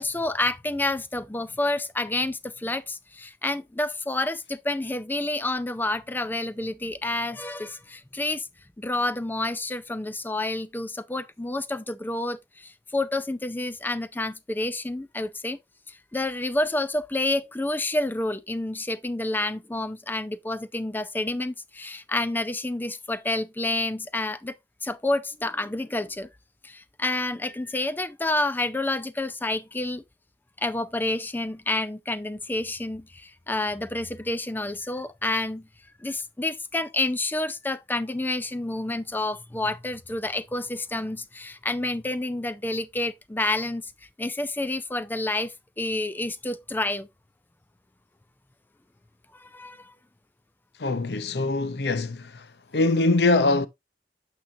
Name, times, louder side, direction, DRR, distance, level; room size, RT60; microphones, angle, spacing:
voice 1, 0.0-8.5 8.8-15.6 15.9-24.5 24.8-26.3 26.6-30.0 30.6-35.7 36.0-43.9 44.2-47.1 49.3-49.9, left 2 dB, 10° left, 0.5 m, -29 dB
voice 2, 50.8-52.5 52.7-53.7, left 2 dB, 65° left, 0.7 m, -23 dB
8.8 x 5.6 x 2.7 m
head